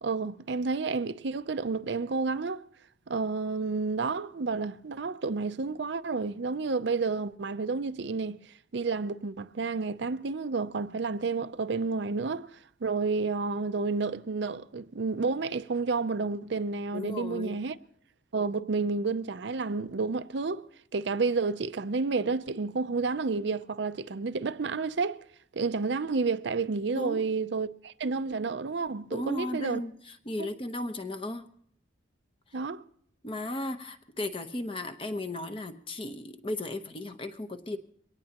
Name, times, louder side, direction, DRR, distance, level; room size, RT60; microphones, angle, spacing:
voice 1, 0.0-2.6 3.1-8.4 8.7-17.8 18.3-20.6 20.9-25.2 25.5-29.8 30.4-30.5 32.5-32.8, right 4 dB, 60° right, 0.5 m, -30 dB
voice 2, 16.9-17.6 26.9-27.2 29.1-29.9 30.2-31.5 33.2-37.8, left 1 dB, 25° left, 0.9 m, -35 dB
23.5 x 18.0 x 2.9 m
head